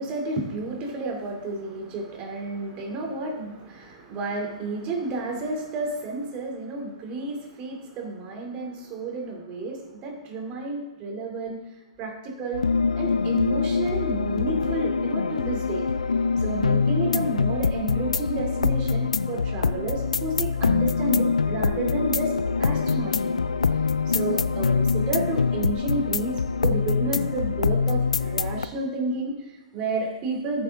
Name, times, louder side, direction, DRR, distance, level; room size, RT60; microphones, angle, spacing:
voice 1, 0.0-11.6 12.0-12.6 12.9-15.9 16.4-22.3 22.6-23.4 24.1-30.6, right 2 dB, 30° right, 2 dB, 2.9 m, -31 dB
sound 1, 12.5-28.7, left 5 dB, 85° left, 0.5 m, -24 dB
14.0 x 7.4 x 3.7 m, 1.1 s
hypercardioid pair, 125°, 4 cm